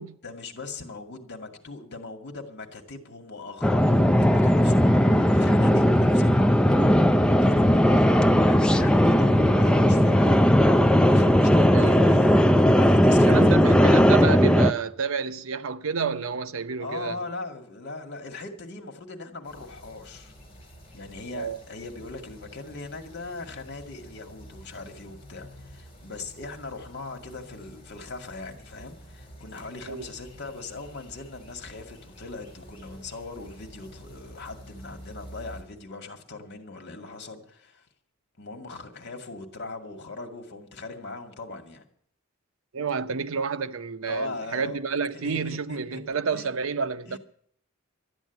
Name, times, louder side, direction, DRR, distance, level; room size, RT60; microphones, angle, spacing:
voice 1, 0.2-14.1 16.8-20.3 20.9-37.9 38.4-41.8 44.1-44.8 45.1-46.0 46.3-46.5 47.1-47.2, left 3 dB, 55° left, 2.1 m, -40 dB
sound 1, 3.6-14.7, equal, 5° left, 0.5 m, -18 dB
voice 2, 11.7-12.2 13.1-17.2 21.3-21.6 29.9-30.1 42.7-47.2, right 5 dB, 75° right, 0.7 m, -30 dB
sound 2, 19.4-35.6, equal, 30° left, 5.7 m, -48 dB
12.5 x 9.1 x 9.3 m
head